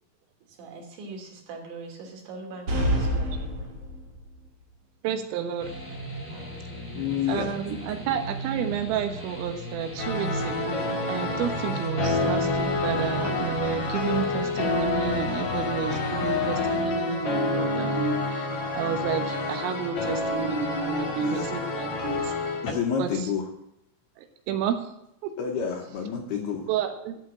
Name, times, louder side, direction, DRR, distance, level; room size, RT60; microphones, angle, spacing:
voice 1, 0.5-3.7 6.3-7.2, right 3 dB, 65° right, 4.7 m, -42 dB
sound 1, 2.7-4.3, equal, 35° right, 2.7 m, -27 dB
voice 2, 5.0-5.7 7.3-22.3 23.0-23.1 24.2-24.9 25.2-25.3 26.7-27.2, right 8 dB, 90° right, 3.9 m, -31 dB
sound 2, 5.6-16.9, right 1 dB, 10° left, 0.7 m, -37 dB
voice 3, 7.0-7.5 21.2-21.4 22.6-23.4 25.4-26.7, left 7 dB, 75° left, 2.5 m, -29 dB
sound 3, 10.0-22.7, left 3 dB, 50° left, 1.9 m, -28 dB
14.0 x 5.8 x 8.4 m
omnidirectional pair, 5.7 m